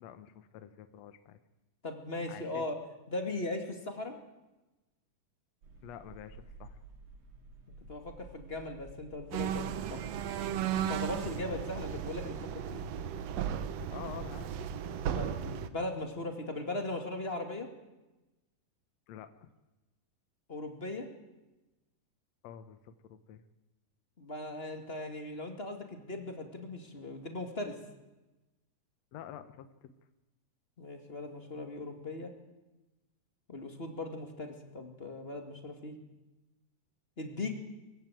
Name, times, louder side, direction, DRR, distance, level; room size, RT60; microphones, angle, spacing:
voice 1, 0.0-1.4 2.3-2.6 5.8-6.8 11.3-11.7 13.9-14.5 19.1-19.5 22.4-23.4 29.1-29.9, left 10 dB, 65° left, 10 dB, 1.9 m, -48 dB
voice 2, 1.8-2.7 3.1-4.2 7.9-10.0 10.9-12.9 15.1-17.7 20.5-21.1 24.2-27.8 30.8-32.3 33.5-36.0 37.2-37.5, left 2 dB, 20° left, 5 dB, 1.9 m, -39 dB
sound 1, 5.6-14.6, right 4 dB, 50° right, 2.9 m, -51 dB
sound 2, 9.3-15.7, right 9 dB, 70° right, 1.7 m, -35 dB
23.0 x 15.5 x 9.1 m, 1.0 s
omnidirectional pair, 4.0 m